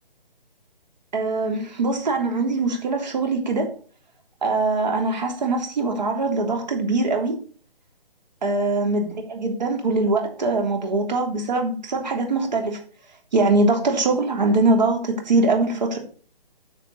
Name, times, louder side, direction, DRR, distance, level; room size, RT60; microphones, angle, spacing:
voice 1, 1.1-3.7 4.4-7.4 8.4-12.8 13.3-16.0, right 3 dB, 50° right, 3 dB, 3.4 m, -22 dB
9.8 x 7.7 x 4.1 m, 0.42 s
figure-of-eight pair, 145°, 29 cm